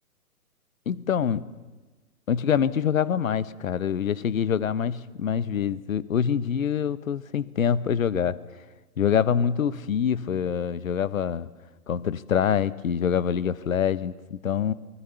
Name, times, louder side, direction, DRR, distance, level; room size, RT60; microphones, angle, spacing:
voice 1, 0.9-1.5 2.3-8.4 9.0-11.5 11.9-14.7, left 8 dB, 60° left, 18 dB, 1.1 m, -25 dB
28.0 x 20.0 x 7.0 m, 1.2 s
figure-of-eight pair, 135°, 45 cm